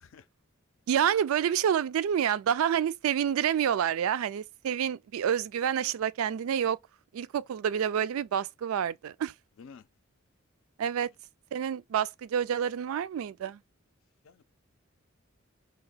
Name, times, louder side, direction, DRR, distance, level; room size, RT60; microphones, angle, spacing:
voice 1, 0.0-0.3 9.6-9.9 11.0-11.1 14.2-14.4, left 5 dB, 70° left, 0.4 m, -51 dB
voice 2, 0.9-6.8 7.1-9.3 10.8-11.1 11.5-13.6, right 9 dB, 85° right, 0.3 m, -28 dB
2.9 x 2.8 x 4.0 m
head